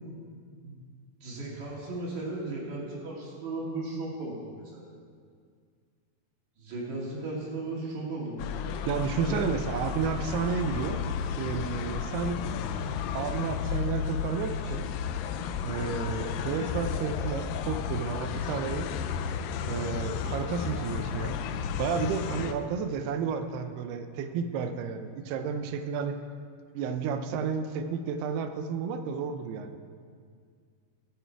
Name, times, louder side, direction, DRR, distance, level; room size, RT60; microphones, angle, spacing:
voice 1, 1.2-4.8 6.6-8.8 9.3-9.5, right 2 dB, 50° right, -4 dB, 3.4 m, -36 dB
sound 1, 8.4-22.5, left 7 dB, 85° left, 2.0 m, -33 dB
voice 2, 8.9-11.0 11.4-12.4 13.1-14.9 15.6-18.9 19.7-21.4 21.8-26.2 26.7-29.8, right 6 dB, 85° right, 8 dB, 2.7 m, -31 dB
19.0 x 8.0 x 4.6 m, 2.1 s
omnidirectional pair, 4.6 m